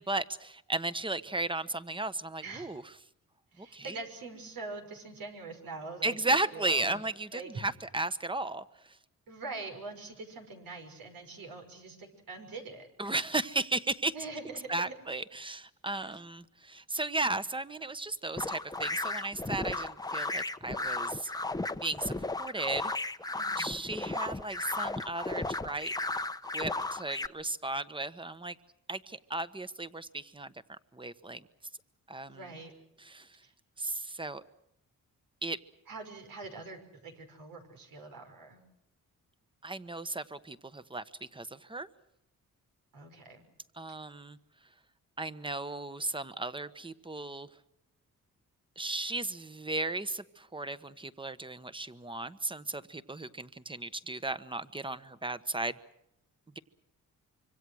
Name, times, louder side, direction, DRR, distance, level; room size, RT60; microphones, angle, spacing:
voice 1, 0.0-2.8 3.6-4.0 6.0-9.0 13.0-14.1 14.7-21.3 21.8-22.9 23.6-25.9 26.5-28.6 28.9-30.5 30.9-31.4 32.1-32.5 33.0-33.3 33.8-34.4 35.4-35.6 39.6-41.9 43.7-44.4 45.2-47.5 48.8-55.8, right 2 dB, 15° right, 13 dB, 1.2 m, -35 dB
voice 2, 2.4-2.8 3.5-7.0 7.3-7.7 9.3-12.9 14.1-15.0 16.0-16.2 23.3-23.7 32.2-32.7 35.9-38.6 42.9-43.5, right 3 dB, 90° right, 4 dB, 5.8 m, -44 dB
sound 1, 18.4-27.3, left 2 dB, 10° left, 0.8 m, -35 dB
25.5 x 24.5 x 6.4 m, 0.80 s
cardioid pair, 95°, 34 cm